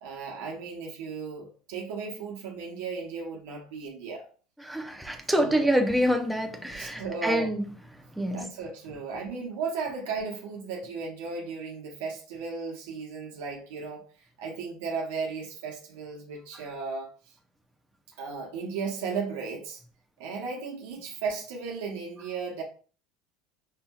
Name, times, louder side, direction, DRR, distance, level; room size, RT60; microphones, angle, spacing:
voice 1, 0.0-4.3 5.3-5.7 6.7-7.5 8.3-17.3 18.2-19.8 20.2-22.6, right 5 dB, 85° right, 1.0 m, -35 dB
voice 2, 4.7-7.6 8.2-8.5, equal, ahead, 0.7 m, -26 dB
5.6 x 2.7 x 2.4 m
supercardioid pair, 120°, 0 cm